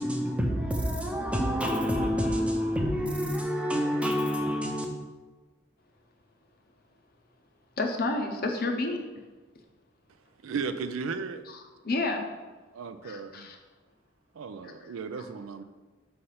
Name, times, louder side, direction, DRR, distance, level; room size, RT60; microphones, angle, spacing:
voice 1, 0.0-4.9, equal, 5° right, 2 dB, 0.6 m, -28 dB
voice 2, 7.8-9.0 11.5-12.2 13.0-13.6 14.6-15.3, left 2 dB, 50° left, 4 dB, 0.7 m, -31 dB
voice 3, 10.4-11.4 12.7-13.5 14.4-15.6, right 5 dB, 90° right, 10 dB, 0.4 m, -35 dB
5.5 x 3.3 x 5.6 m, 1.3 s
head